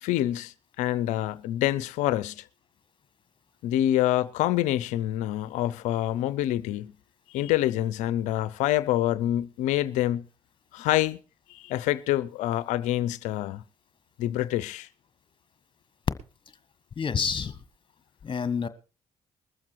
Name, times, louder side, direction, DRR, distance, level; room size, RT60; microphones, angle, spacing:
voice 1, 0.0-2.4 3.6-6.9 7.3-10.2 10.7-11.2 11.5-13.6 14.2-14.9, left 14 dB, 80° left, 0.5 m, -26 dB
voice 2, 17.0-17.6 18.2-18.7, left 6 dB, 40° left, 1.5 m, -28 dB
21.0 x 7.3 x 4.6 m
hypercardioid pair, 55°, 12 cm